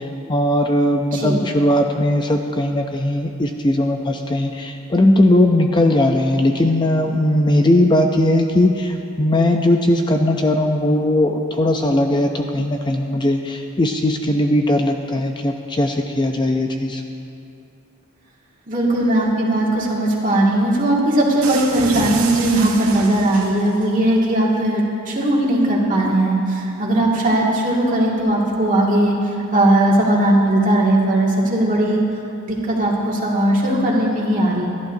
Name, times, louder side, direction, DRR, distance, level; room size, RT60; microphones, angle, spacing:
voice 1, 0.0-17.0, left 1 dB, 20° left, 4 dB, 0.5 m, -18 dB
voice 2, 1.1-1.4 18.7-29.1 29.5-32.0 32.4-34.7, right 1 dB, 35° right, -3 dB, 2.1 m, -18 dB
Accident fall drop topple, 21.4-23.9, right 4 dB, 70° right, 1.6 m, -29 dB
26.5 x 11.5 x 2.7 m, 2.7 s
head